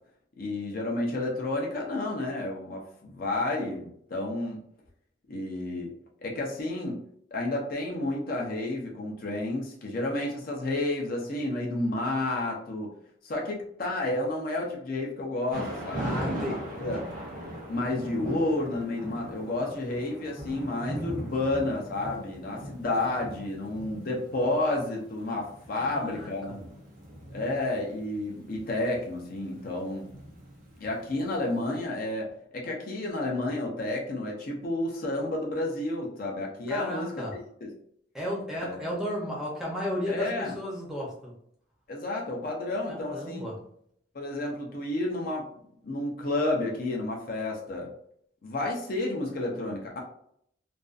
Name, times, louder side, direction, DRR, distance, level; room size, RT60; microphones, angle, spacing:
voice 1, 0.4-4.6 5.3-5.9 6.2-7.0 7.3-12.9 13.2-17.0 17.7-26.7 27.3-30.1 30.8-37.1 37.6-37.7 38.6-38.8 40.1-40.6 41.9-43.4 44.1-45.5 45.8-47.9 48.4-50.0, left 2 dB, 45° left, -1 dB, 0.4 m, -31 dB
Thunder / Rain, 15.5-31.5, right 1 dB, 45° right, 0.6 m, -40 dB
voice 2, 16.0-16.6 22.5-22.6 25.8-26.6 36.7-37.4 38.1-41.3 42.9-43.6, equal, 5° right, -4 dB, 0.6 m, -34 dB
2.4 x 2.2 x 2.3 m, 0.67 s
head